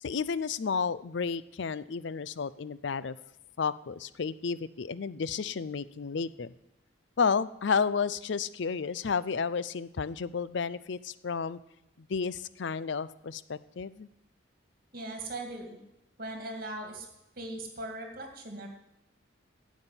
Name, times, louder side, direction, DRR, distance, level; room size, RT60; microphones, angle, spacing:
voice 1, 0.0-3.1 3.6-6.5 7.2-11.6 12.1-14.1, left 5 dB, 60° left, 17 dB, 0.5 m, -32 dB
voice 2, 14.9-15.8 16.2-17.1 17.4-18.7, right 2 dB, 45° right, 3 dB, 2.2 m, -39 dB
11.0 x 7.3 x 9.8 m, 0.89 s
head